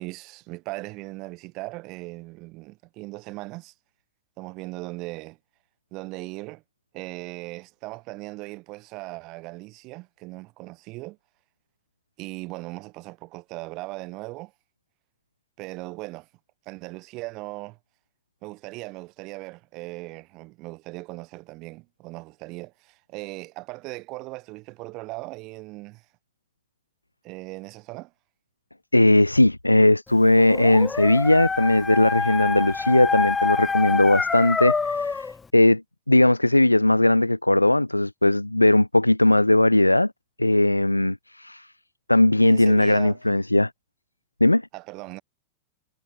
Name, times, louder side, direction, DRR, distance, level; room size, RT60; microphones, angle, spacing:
voice 1, 0.0-3.7 4.4-5.4 5.9-6.6 6.9-11.2 12.2-14.5 15.6-16.3 16.7-17.8 18.4-26.1 27.2-28.1 42.4-43.2 44.7-45.2, right 23 dB, 40° right, 7.0 m, -38 dB
voice 2, 28.9-35.8 36.1-40.1 40.4-41.7 42.1-43.7 44.4-44.6, left 1 dB, 85° left, 0.8 m, -18 dB
Dog, 30.3-35.4, left 4 dB, 15° left, 1.0 m, -26 dB
figure-of-eight pair, 90°, 0 cm